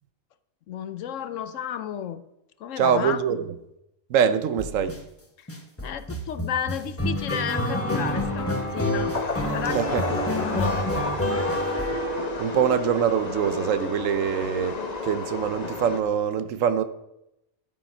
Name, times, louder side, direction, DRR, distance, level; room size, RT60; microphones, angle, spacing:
voice 1, 0.7-2.2 2.6-3.2 5.4-5.5 5.8-9.2 9.5-10.8 11.2-11.4, left 9 dB, 70° left, 1.0 m, -32 dB
voice 2, 2.8-3.5 4.1-5.0 9.7-10.0 12.4-16.8, right 8 dB, 70° right, 1.1 m, -24 dB
sound 1, 4.6-5.0 5.5-12.7, equal, 10° left, 1.2 m, -28 dB
sound 2, 7.8-16.0, left 3 dB, 30° left, 1.1 m, -32 dB
12.5 x 8.8 x 5.4 m
omnidirectional pair, 1.4 m